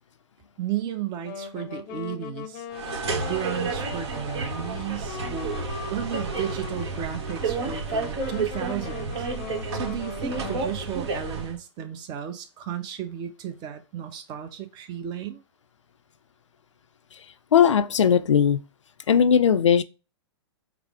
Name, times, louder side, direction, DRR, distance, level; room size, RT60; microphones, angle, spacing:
voice 1, 0.6-2.7 3.1-9.3 9.7-15.4, right 10 dB, 30° right, 0.7 m, -34 dB
Wind instrument woodwind instrument, 1.2-10.7, left 7 dB, 40° left, 0.6 m, -40 dB
sound 1, 2.7-11.6, right 4 dB, 60° right, 1.2 m, -31 dB
voice 2, 17.5-18.6 19.1-19.8, left 8 dB, 90° left, 0.5 m, -18 dB
4.9 x 2.0 x 4.7 m
hypercardioid pair, 125°, 15 cm